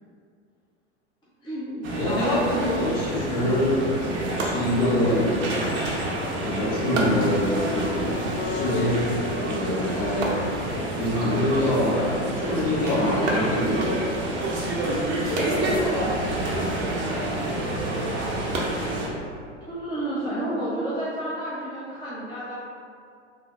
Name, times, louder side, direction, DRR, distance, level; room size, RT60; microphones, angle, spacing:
voice 1, 1.4-2.9 3.4-3.7 8.7-9.1 15.2-17.4 19.6-22.5, equal, 10° left, -9 dB, 0.7 m, -31 dB
sound 1, 1.8-19.1, right 1 dB, 30° right, 0.6 m, -28 dB
voice 2, 1.9-3.7 4.4-5.5 6.4-8.2 8.4-10.4 11.0-13.9, left 1 dB, 45° left, -6 dB, 1.2 m, -25 dB
sound 2, 4.3-19.5, right 1 dB, 80° right, 0.7 m, -36 dB
Acoustic guitar, 8.4-11.6, left 3 dB, 75° left, 0.6 m, -36 dB
3.3 x 2.1 x 3.4 m, 2.4 s
hypercardioid pair, 90°, 37 cm